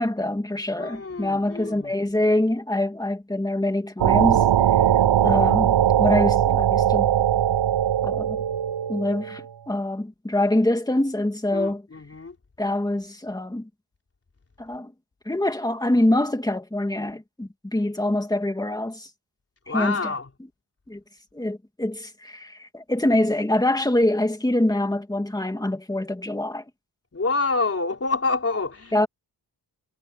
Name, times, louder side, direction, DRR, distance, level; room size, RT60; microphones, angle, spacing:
voice 1, 0.0-4.4 4.7-4.8 5.2-7.2 8.0-8.4 8.9-11.8 12.6-13.7 14.6-14.9 15.3-19.1 19.7-20.1 20.9-21.0 21.3-26.6 28.9-29.1, left 1 dB, 10° left, 2.2 m, -25 dB
voice 2, 0.8-1.9 11.5-12.4 19.7-20.3 27.1-29.1, left 3 dB, 35° left, 3.8 m, -27 dB
sound 1, 4.0-9.4, right 10 dB, 75° right, 0.8 m, -20 dB
wide cardioid pair, 165°, 42 cm